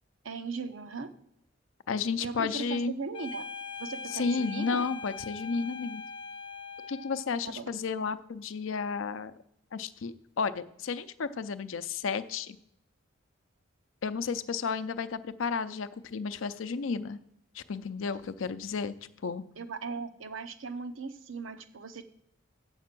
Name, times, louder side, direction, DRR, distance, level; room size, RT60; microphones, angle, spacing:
voice 1, 0.2-1.1 2.2-3.4 3.8-4.9 7.4-7.7 19.6-22.0, right 4 dB, 90° right, 9 dB, 0.8 m, -38 dB
voice 2, 1.9-3.0 4.1-6.0 6.9-9.3 9.7-12.6 14.0-17.2 17.5-18.9 19.2-19.4, left 5 dB, 90° left, 12 dB, 0.5 m, -32 dB
sound 1, 3.1-7.3, left 4 dB, 25° left, 0.6 m, -41 dB
7.4 x 7.2 x 6.0 m, 0.77 s
head